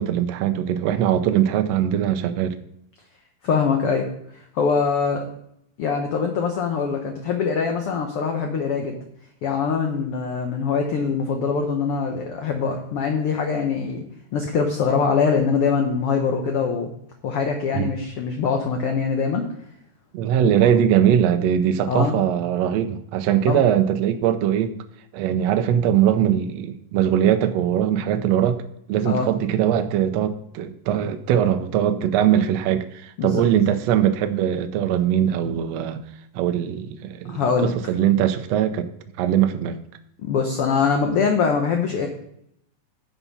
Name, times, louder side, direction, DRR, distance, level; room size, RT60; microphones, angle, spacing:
voice 1, 0.0-2.5 17.7-17.9 20.1-24.7 25.1-28.6 28.9-36.0 36.3-38.9 39.2-39.8, right 10 dB, 80° right, 8 dB, 1.5 m, -21 dB
voice 2, 3.4-4.1 4.5-5.2 5.8-8.9 9.4-14.0 14.3-16.9 17.2-19.5 21.9-22.2 23.4-23.7 29.0-29.3 33.2-33.4 37.3-37.7 40.2-42.1, left 5 dB, 65° left, 3 dB, 1.4 m, -23 dB
11.0 x 7.1 x 4.2 m, 0.73 s
omnidirectional pair, 3.9 m